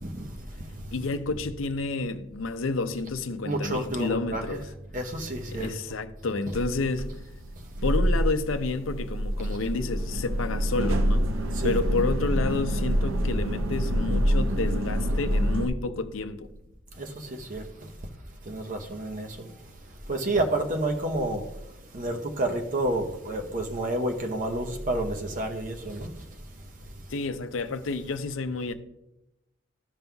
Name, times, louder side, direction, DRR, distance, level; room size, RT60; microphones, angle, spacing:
voice 1, 0.9-4.7 5.5-7.2 7.8-11.3 11.6-16.5 27.1-28.7, left 3 dB, 80° left, 0.6 m, -30 dB
voice 2, 3.4-4.6 4.9-5.7 6.5-6.6 11.6-11.8 17.0-17.6 18.5-19.5 20.1-21.4 21.9-26.1, right 1 dB, 40° right, 0.8 m, -29 dB
sound 1, 6.5-15.7, equal, 80° right, 0.6 m, -26 dB
14.0 x 5.4 x 2.3 m
head